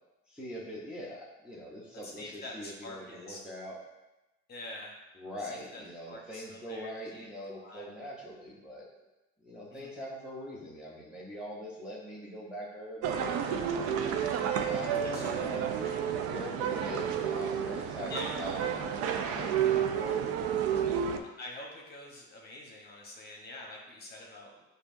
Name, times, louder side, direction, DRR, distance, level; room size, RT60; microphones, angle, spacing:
voice 1, 0.3-3.8 5.1-8.9 9.4-14.0 14.6-15.7 16.3-20.9, equal, 5° right, -6 dB, 0.8 m, -43 dB
voice 2, 2.0-3.4 4.5-4.9 5.4-7.2 7.6-7.9 9.7-9.9 14.9-15.2 15.9-16.2 18.1-18.3 21.4-24.6, left 2 dB, 35° left, -1 dB, 1.0 m, -45 dB
sound 1, 13.0-21.2, right 8 dB, 55° right, 0.5 m, -31 dB
6.7 x 2.7 x 2.6 m, 1.0 s
cardioid pair, 115°, 29 cm